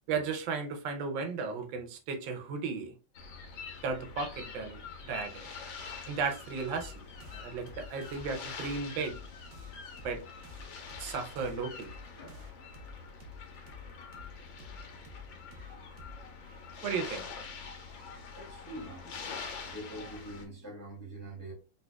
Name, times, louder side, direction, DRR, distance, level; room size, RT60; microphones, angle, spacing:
voice 1, 0.1-2.9 3.8-5.5 6.1-9.2 10.0-10.2 11.0-12.3 16.8-17.2, right 5 dB, 90° right, 1.4 m, -35 dB
sound 1, 3.1-20.4, left 5 dB, 85° left, 1.5 m, -45 dB
sound 2, 6.7-17.8, left 3 dB, 70° right, 1.1 m, -51 dB
voice 2, 18.4-19.2 19.6-21.5, right 1 dB, 15° left, 0.5 m, -44 dB
4.0 x 2.7 x 2.2 m
omnidirectional pair, 2.0 m